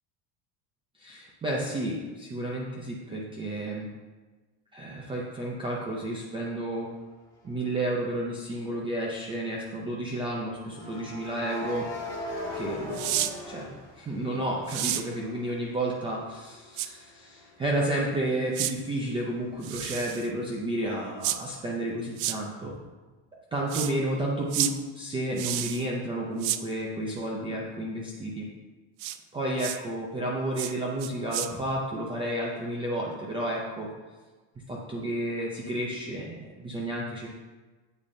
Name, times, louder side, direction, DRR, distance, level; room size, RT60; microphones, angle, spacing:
voice 1, 1.0-3.9 4.7-6.9 7.4-11.9 12.5-22.8 23.5-28.5 29.3-33.9 34.7-37.3, right 1 dB, 10° right, -3 dB, 0.4 m, -31 dB
sound 1, 7.4-7.6 10.7-14.6 15.0-18.6, left 1 dB, 10° left, 1.5 m, -39 dB
sound 2, 12.9-13.3 14.7-15.0 16.8-16.9 18.5-18.7 19.6-20.3 21.2-21.4 22.2-22.4 23.7-23.9 24.5-24.7 25.4-25.9 26.4-26.6 29.0-29.2 29.6-29.8 30.6-30.7 31.0-31.5, right 13 dB, 70° right, 0.6 m, -30 dB
8.5 x 8.3 x 2.6 m, 1.3 s
cardioid pair, 175°, 45 cm